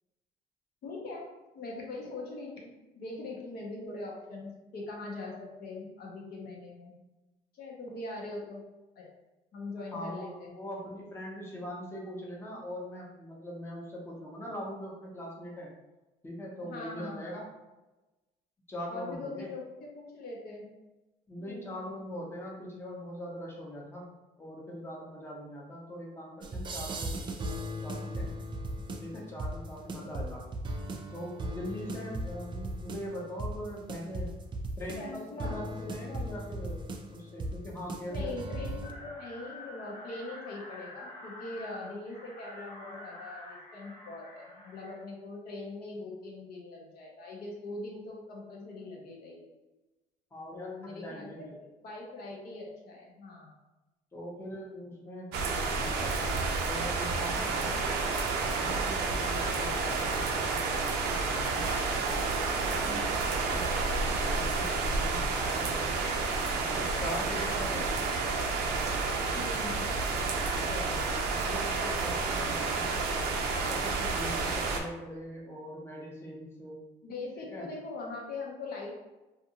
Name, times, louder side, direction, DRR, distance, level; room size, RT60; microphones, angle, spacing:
voice 1, 0.8-6.9 7.5-8.6 9.0-9.1 9.5-10.5 16.6-17.4 18.9-20.7 21.4-21.9 31.9-32.0 34.9-35.6 38.1-49.5 50.5-53.6 57.3-57.5 62.7-63.2 67.3-67.8 69.3-69.9 77.0-78.9, left 2 dB, 65° left, -2 dB, 0.7 m, -42 dB
voice 2, 9.9-15.7 16.2-17.5 18.7-19.5 21.3-24.1 24.4-28.3 29.0-30.4 31.1-34.3 34.8-36.8 37.1-38.3 50.3-51.6 54.1-55.3 55.6-56.2 56.6-57.8 58.4-63.1 63.5-63.7 64.2-66.0 66.6-68.1 70.5-72.9 73.5-76.8 77.5-77.7, equal, 15° left, -3 dB, 0.7 m, -42 dB
sound 1, 26.4-38.9, right 1 dB, 30° right, 0.4 m, -38 dB
sound 2, 38.8-45.0, left 1 dB, 85° left, 1.3 m, -47 dB
sound 3, 55.3-74.8, right 4 dB, 85° right, 0.5 m, -30 dB
2.5 x 2.4 x 2.8 m, 1.1 s
cardioid pair, 110°, 17 cm